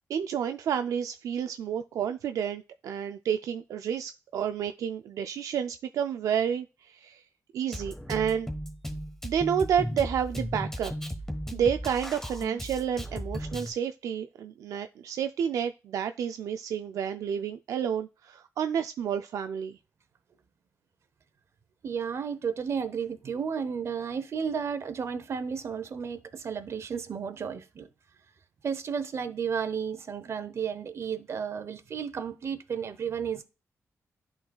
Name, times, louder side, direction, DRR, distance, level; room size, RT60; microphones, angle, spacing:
voice 1, 0.1-7.2 7.5-8.5 9.2-10.9 11.5-19.8, right 8 dB, 85° right, 0.3 m, -30 dB
Drum kit, 7.7-13.7, equal, 10° left, 1.3 m, -36 dB
voice 2, 21.8-27.9 28.6-33.4, right 6 dB, 55° right, 0.8 m, -33 dB
11.5 x 3.9 x 2.3 m
cardioid pair, 95°, 5 cm